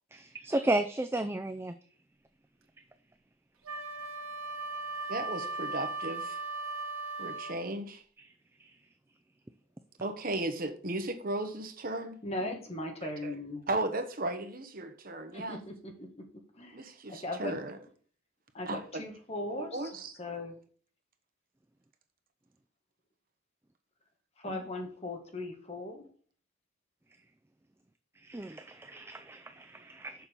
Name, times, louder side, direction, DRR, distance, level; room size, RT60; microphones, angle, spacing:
voice 1, 0.1-1.7 8.2-8.3 28.2-30.2, right 1 dB, 10° right, 0.4 m, -33 dB
Wind instrument woodwind instrument, 3.7-7.6, right 3 dB, 85° right, 1.4 m, -37 dB
voice 2, 5.1-6.4 7.2-8.0 10.0-12.2 13.0-13.3 13.7-15.6 16.7-17.8 18.7-19.0 19.6-20.1 24.4-24.6, right 2 dB, 40° right, 1.2 m, -35 dB
voice 3, 12.2-13.6 15.3-16.3 16.6-16.8 17.1-17.6 18.5-20.6 24.4-26.0, left 1 dB, 30° left, 1.8 m, -38 dB
7.0 x 5.8 x 6.7 m
head